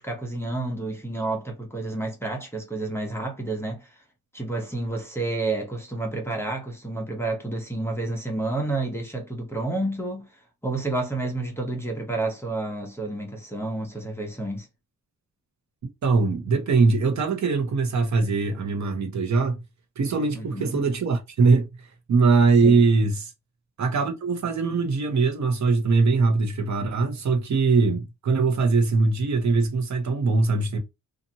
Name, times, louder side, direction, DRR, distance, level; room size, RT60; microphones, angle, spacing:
voice 1, 0.0-4.0 4.3-14.7 20.3-20.8 22.6-22.8, right 2 dB, 5° left, 0.7 m, -30 dB
voice 2, 16.0-19.6 20.0-21.7 22.1-23.3 23.8-30.8, right 4 dB, 55° right, 0.9 m, -21 dB
2.7 x 2.5 x 2.7 m
wide cardioid pair, 130°, 34 cm